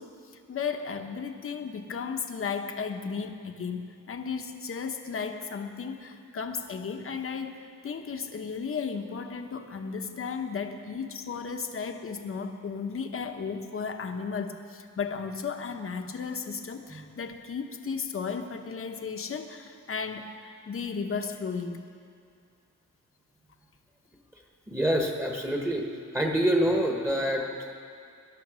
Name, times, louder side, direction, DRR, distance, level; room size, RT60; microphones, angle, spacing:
voice 1, 0.0-7.6 7.8-21.8, left 5 dB, 45° left, 6 dB, 1.0 m, -34 dB
voice 2, 24.7-25.9 26.1-27.7, equal, 10° right, 0 dB, 1.2 m, -26 dB
18.5 x 11.5 x 6.2 m, 2.3 s
wide cardioid pair, 180°, 31 cm